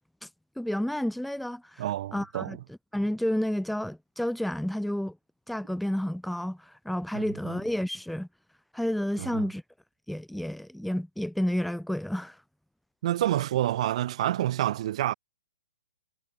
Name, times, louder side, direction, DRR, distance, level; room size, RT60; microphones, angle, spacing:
voice 1, 0.6-1.8 2.1-5.2 5.5-8.3 8.7-9.6 10.1-12.4, left 1 dB, ahead, 0.7 m, -30 dB
voice 2, 1.8-2.6 7.1-7.6 9.2-9.4 13.0-15.1, right 13 dB, 50° right, 2.8 m, -28 dB
hypercardioid pair, 130°, 4 cm